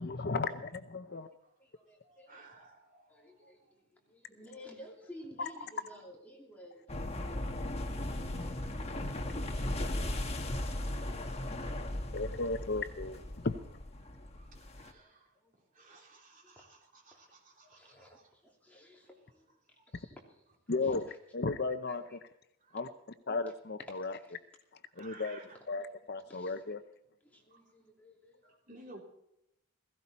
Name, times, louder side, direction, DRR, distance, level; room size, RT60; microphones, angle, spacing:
voice 1, 0.0-1.3 5.4-5.5 12.1-13.6 20.7-22.2 22.7-22.9 23.3-24.1 25.0-25.4 25.7-26.8, left 3 dB, 45° left, 10 dB, 0.7 m, -35 dB
voice 2, 1.0-1.5 2.0-3.5 8.0-8.7 14.0-15.3 15.7-18.3 18.7-18.8 19.7-19.9 22.6-22.8 24.9-25.6 27.5-27.6 28.4-29.0, right 2 dB, 35° right, -1 dB, 3.5 m, -57 dB
voice 3, 1.6-2.5 3.1-8.7 9.1-10.8 12.8-12.9 14.1-14.2 14.9-16.0 16.4-16.7 17.1-17.2 17.7-19.5 19.9-20.5 20.8-21.2 21.9-22.2 23.9-24.4 26.3-26.6 27.2-28.6, equal, 5° left, -1 dB, 2.7 m, -55 dB
sound 1, 6.9-14.9, left 1 dB, 30° left, 1.3 m, -37 dB
16.5 x 16.5 x 4.2 m, 0.81 s
head